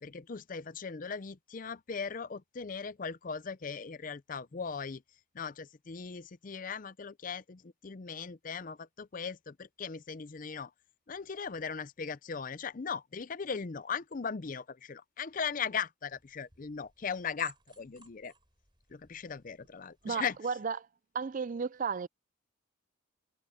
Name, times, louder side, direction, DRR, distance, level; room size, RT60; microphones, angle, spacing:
voice 1, 0.0-5.0 5.3-10.7 11.1-18.3 18.9-20.4, left 6 dB, 40° left, 0.5 m, -38 dB
sound 1, 16.1-20.4, right 4 dB, 25° right, 6.2 m, -58 dB
voice 2, 20.0-20.9 21.1-22.1, right 5 dB, 40° right, 0.4 m, -34 dB
head